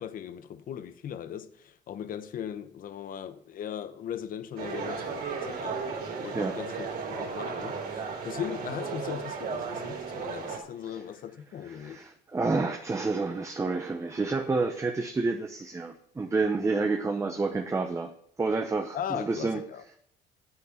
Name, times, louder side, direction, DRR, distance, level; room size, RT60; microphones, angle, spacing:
voice 1, 0.0-5.8 6.2-12.0 18.9-20.0, left 9 dB, 55° left, 0.9 m, -38 dB
sound 1, 4.6-10.6, right 5 dB, 70° right, 3.2 m, -35 dB
voice 2, 11.7-18.1 18.4-19.6, right 3 dB, 15° right, 0.9 m, -29 dB
9.7 x 8.5 x 5.8 m
cardioid pair, 110°, 17 cm